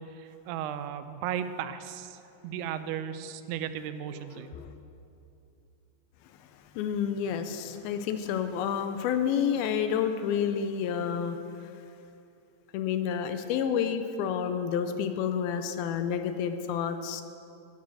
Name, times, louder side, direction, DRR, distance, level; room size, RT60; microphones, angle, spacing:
voice 1, 0.0-4.5, right 9 dB, 90° right, 10 dB, 2.6 m, -36 dB
voice 2, 4.3-4.7 6.8-11.4 12.7-17.2, left 8 dB, 80° left, 8 dB, 2.4 m, -29 dB
10.0 x 9.5 x 7.6 m, 2.7 s
omnidirectional pair, 4.5 m